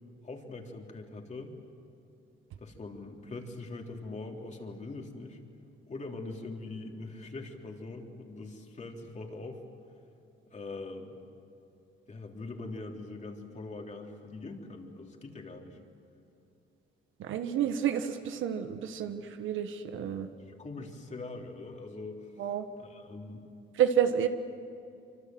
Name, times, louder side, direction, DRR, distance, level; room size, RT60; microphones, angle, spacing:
voice 1, 0.2-1.5 2.6-5.4 5.9-9.6 10.5-11.2 12.1-15.8 20.4-22.3 22.8-23.5, left 3 dB, 35° left, 1 dB, 3.5 m, -42 dB
voice 2, 17.2-20.3 22.4-22.6 23.8-24.3, right 9 dB, 80° right, 8 dB, 1.3 m, -29 dB
25.5 x 24.5 x 7.8 m, 2.7 s
cardioid pair, 90°, 20 cm